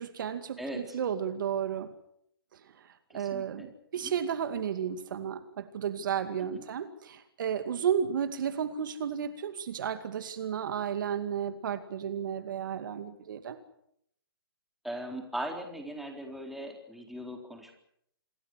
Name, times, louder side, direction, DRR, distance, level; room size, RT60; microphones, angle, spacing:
voice 1, 0.0-1.9 2.5-13.6, right 8 dB, 55° right, 9 dB, 2.3 m, -33 dB
voice 2, 3.1-3.7 4.0-4.1 6.5-6.7 14.8-17.7, right 1 dB, ahead, 2 dB, 4.1 m, -39 dB
27.5 x 21.5 x 6.4 m, 0.72 s
hypercardioid pair, 140°, 13 cm